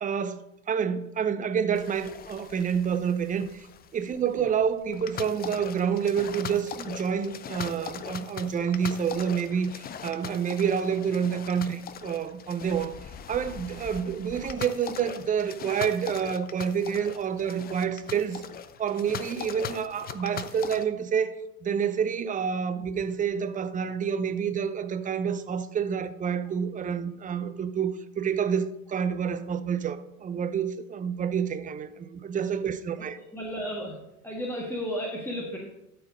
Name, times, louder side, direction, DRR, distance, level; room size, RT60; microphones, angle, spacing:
voice 1, 0.0-3.7 3.9-12.9 13.3-18.4 18.8-33.2, right 7 dB, 20° right, 0.6 m, -28 dB
sound 1, 1.7-20.8, left 8 dB, 20° left, 0.5 m, -40 dB
voice 2, 33.3-34.0 34.2-35.6, equal, 5° left, 1.6 m, -33 dB
12.0 x 4.6 x 5.2 m
hypercardioid pair, 80°, 44 cm